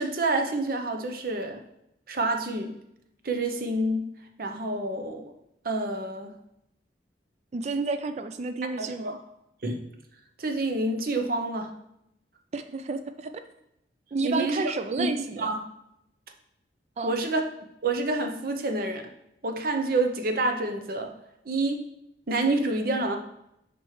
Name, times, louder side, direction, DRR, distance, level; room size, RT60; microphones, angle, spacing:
voice 1, 0.0-1.6 2.1-2.7 3.2-4.1 4.4-5.3 5.6-6.3 8.8-9.2 9.6-9.8 10.4-11.7 14.2-14.6 15.0-15.1 15.4-15.6 17.0-17.4 17.8-19.1 19.4-21.1 21.4-21.8 22.3-23.2, right 2 dB, 55° right, 5 dB, 0.7 m, -28 dB
voice 2, 7.5-9.2 12.5-13.3 14.1-15.5 17.0-17.1, right 4 dB, 40° right, 9 dB, 0.3 m, -31 dB
7.5 x 5.3 x 3.2 m, 0.81 s
head